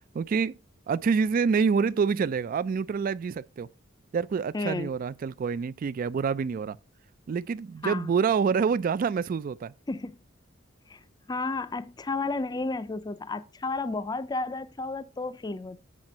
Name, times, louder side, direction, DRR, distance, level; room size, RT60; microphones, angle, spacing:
voice 1, 0.1-0.5 0.9-3.7 4.1-6.8 7.3-9.7, right 5 dB, 45° right, 0.3 m, -27 dB
voice 2, 4.5-4.9 7.8-8.1 9.9-10.2 10.9-11.0 11.3-15.8, left 3 dB, 20° left, 0.4 m, -32 dB
7.6 x 4.8 x 5.3 m
head